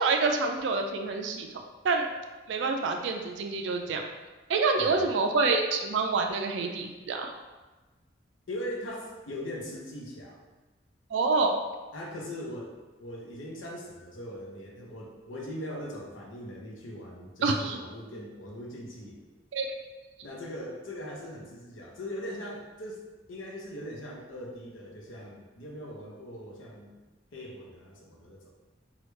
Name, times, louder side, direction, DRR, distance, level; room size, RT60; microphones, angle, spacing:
voice 1, 0.0-1.5 1.8-2.1 2.5-4.1 4.5-7.3 11.1-11.6 17.4-17.8 19.5-19.7, right 4 dB, 65° right, 3 dB, 0.3 m, -27 dB
voice 2, 4.8-5.1 8.5-10.4 11.9-12.7 13.0-19.2 20.2-27.0 27.3-28.5, equal, 85° left, -1 dB, 0.6 m, -40 dB
3.1 x 2.3 x 3.2 m, 1.2 s
head